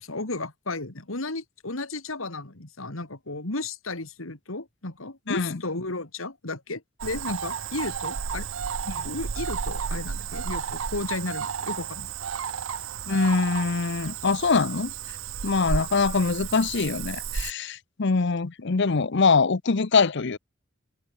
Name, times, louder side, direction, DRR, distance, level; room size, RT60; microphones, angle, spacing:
voice 1, 0.0-8.5 9.0-12.1, left 2 dB, 80° left, 2.9 m, -34 dB
voice 2, 5.3-5.6 8.9-9.1 13.1-14.9 15.4-20.4, left 4 dB, 60° left, 0.8 m, -23 dB
Cricket / Frog, 7.0-17.5, right 6 dB, 70° right, 0.6 m, -32 dB
head